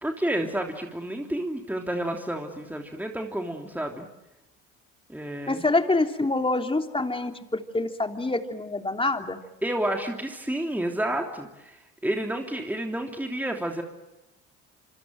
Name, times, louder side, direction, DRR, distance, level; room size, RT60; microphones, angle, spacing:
voice 1, 0.0-4.1 5.1-5.6 9.6-13.8, right 1 dB, 5° right, 2 dB, 3.2 m, -30 dB
voice 2, 5.5-9.4, left 2 dB, 15° left, 5 dB, 3.1 m, -26 dB
27.0 x 26.0 x 7.7 m, 0.96 s
supercardioid pair, 70°, 36 cm